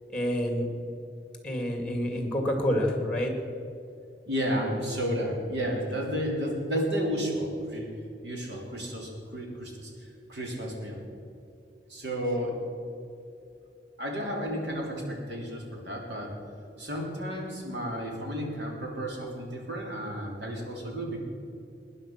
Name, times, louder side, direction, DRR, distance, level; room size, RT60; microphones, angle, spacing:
voice 1, 0.1-0.7 1.4-3.3, equal, 5° left, 3 dB, 2.2 m, -28 dB
voice 2, 4.3-7.9 8.2-11.0 11.9-12.6 14.0-16.3 16.8-21.2, equal, 70° right, 0 dB, 3.5 m, -32 dB
20.0 x 10.0 x 5.9 m, 2.6 s
head